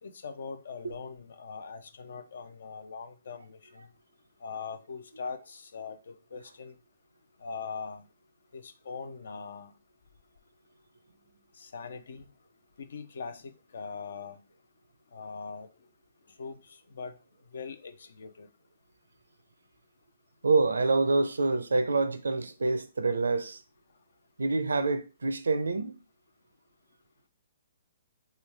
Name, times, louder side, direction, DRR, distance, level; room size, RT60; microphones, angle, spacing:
voice 1, 0.0-3.9 4.4-6.7 7.4-8.0 8.5-9.7 11.6-12.3 12.8-14.4 15.1-15.7 16.4-17.2 17.5-18.5, left 5 dB, 70° left, 0.5 m, -41 dB
voice 2, 20.4-23.6 24.4-26.0, right 3 dB, 80° right, 0.4 m, -26 dB
3.1 x 2.3 x 3.2 m
hypercardioid pair, 130°, 0 cm